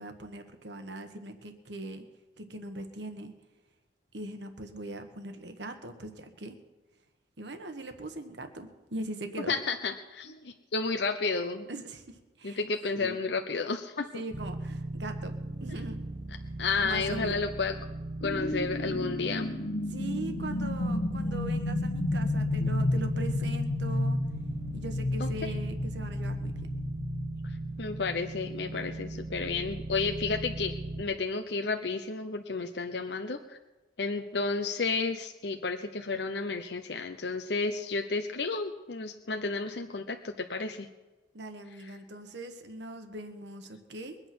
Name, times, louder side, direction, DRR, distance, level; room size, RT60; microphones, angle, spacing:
voice 1, 0.0-2.1 2.4-3.3 4.1-6.6 7.4-9.6 11.7-12.6 12.9-13.2 14.1-15.3 15.6-16.0 16.8-17.4 19.9-24.2 24.7-26.5 41.3-44.2, right 1 dB, 70° right, 6 dB, 1.5 m, -40 dB
voice 2, 9.5-11.7 12.4-14.2 16.6-17.7 18.2-19.5 25.2-25.5 27.4-33.6 34.0-40.9, left 4 dB, 65° left, 5 dB, 0.8 m, -32 dB
sound 1, 14.3-31.0, right 2 dB, 35° right, 1.0 m, -38 dB
sound 2, 18.2-28.5, left 2 dB, 85° left, 1.3 m, -32 dB
22.5 x 8.9 x 6.1 m, 1.2 s
head